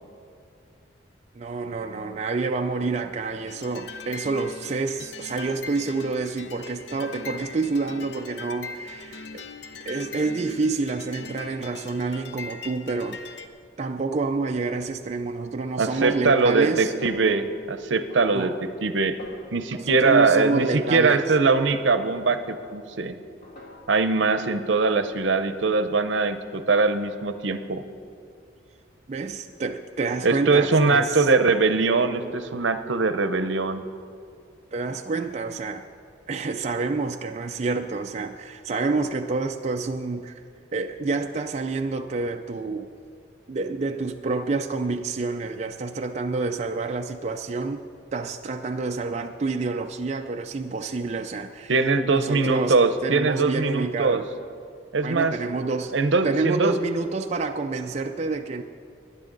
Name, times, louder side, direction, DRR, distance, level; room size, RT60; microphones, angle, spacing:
voice 1, 1.3-9.4 9.9-13.4 13.8-16.9 18.3-18.6 19.7-21.2 29.1-31.3 34.7-35.9 36.3-40.4 40.7-42.9 43.5-47.8 48.1-51.8 52.1-52.7 53.0-54.3 55.0-55.9 56.2-58.6, right 3 dB, 35° right, 4 dB, 0.4 m, -28 dB
sound 1, 3.5-13.5, left 4 dB, 65° left, 0.7 m, -40 dB
voice 2, 15.8-19.2 19.5-23.2 23.9-27.8 30.2-33.8 51.7-54.2 54.9-55.4 55.9-56.8, right 3 dB, 75° right, 10 dB, 0.7 m, -22 dB
Snare drum, 15.9-16.7 17.0-17.6 18.1-18.9 19.2-19.6 20.0-22.1 22.5-23.0 23.4-24.1, left 1 dB, 50° left, 2.2 m, -45 dB
19.0 x 10.5 x 3.9 m, 2.4 s
head